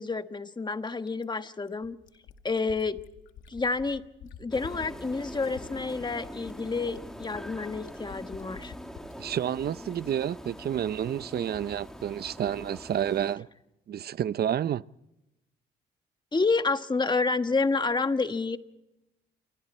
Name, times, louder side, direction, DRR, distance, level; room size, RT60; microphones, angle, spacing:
voice 1, 0.0-2.0 2.4-3.0 3.5-4.0 4.4-8.7 16.3-18.6, left 3 dB, 20° left, 1.3 m, -29 dB
Fill (with liquid), 1.1-9.2 10.5-10.6, left 7 dB, 85° left, 2.2 m, -48 dB
sound 1, 4.5-13.3, equal, 5° left, 2.5 m, -43 dB
voice 2, 9.2-13.5 13.9-14.8, right 10 dB, 50° right, 0.7 m, -30 dB
28.5 x 24.5 x 4.3 m
cardioid pair, 90°, 20 cm